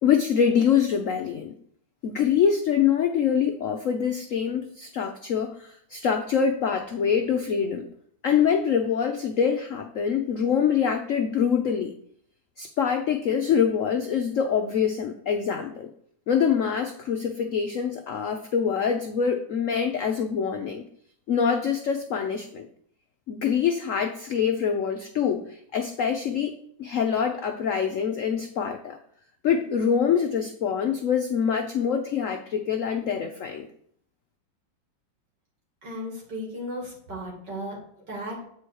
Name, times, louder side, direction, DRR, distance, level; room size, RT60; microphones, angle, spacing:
voice 1, 0.0-1.5 2.0-7.9 8.2-11.9 12.6-15.9 16.3-20.8 21.3-22.7 23.3-26.5 26.8-29.0 29.4-33.7, left 7 dB, 75° left, 5 dB, 0.7 m, -25 dB
voice 2, 35.8-38.4, equal, 60° right, -2 dB, 3.1 m, -35 dB
8.3 x 4.9 x 4.6 m, 0.64 s
omnidirectional pair, 2.2 m